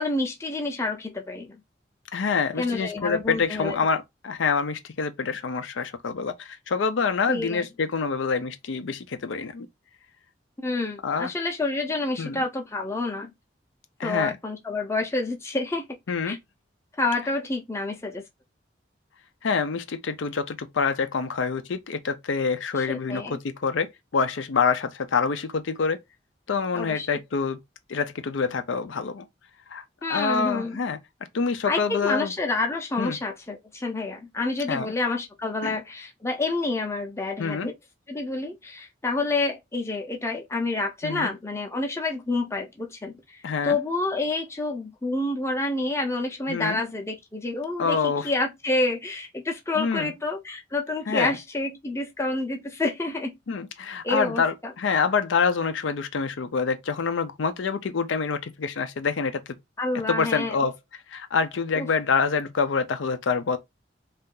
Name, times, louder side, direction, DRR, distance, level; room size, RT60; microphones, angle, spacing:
voice 1, 0.0-1.6 2.6-3.8 7.3-7.6 10.6-13.3 14.0-15.8 16.2-16.4 17.0-18.2 22.9-23.4 26.7-27.1 30.0-30.8 31.7-37.7 38.1-43.4 43.6-53.3 54.0-54.7 59.8-60.5 61.8-61.9, left 2 dB, 15° left, 0.5 m, -28 dB
voice 2, 2.1-9.7 11.0-11.3 12.2-12.4 14.0-14.4 16.1-16.4 19.4-23.9 24.1-26.0 26.5-27.6 27.9-29.3 29.7-29.8 30.1-31.0 31.3-32.3 33.0-33.2 34.7-34.9 35.6-35.8 37.4-37.7 41.0-41.3 43.4-43.8 46.5-46.8 47.8-48.3 49.7-50.1 51.1-51.4 53.5-59.4 60.1-63.6, left 5 dB, 85° left, 0.5 m, -26 dB
2.7 x 2.4 x 3.7 m
head